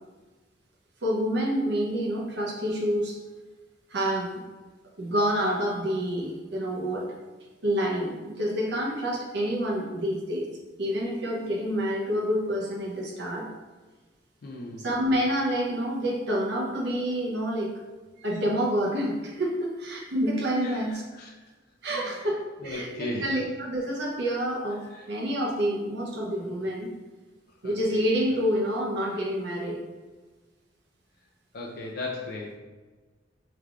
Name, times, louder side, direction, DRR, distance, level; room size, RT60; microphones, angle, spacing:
voice 1, 1.0-3.2 3.9-4.4 5.0-7.1 7.6-10.5 10.8-13.5 14.8-17.7 18.2-21.0 21.8-22.4 22.6-26.9 27.6-29.8, equal, 65° right, -2 dB, 0.7 m, -28 dB
voice 2, 14.4-14.9 20.6-21.3 21.8-22.2 22.6-23.3 24.9-25.1 26.4-26.6 27.6-28.0 31.5-32.6, left 2 dB, 55° left, -1 dB, 0.5 m, -37 dB
4.7 x 3.4 x 2.4 m, 1.3 s
head